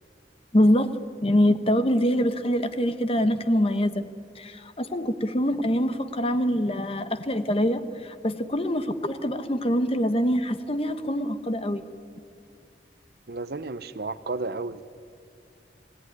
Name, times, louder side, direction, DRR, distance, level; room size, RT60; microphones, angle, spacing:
voice 1, 0.5-0.9 1.2-4.1 4.4-11.8, equal, 35° left, 10 dB, 1.1 m, -24 dB
voice 2, 13.3-14.8, right 3 dB, 60° right, 13 dB, 0.8 m, -32 dB
29.0 x 17.0 x 9.8 m, 2.4 s
head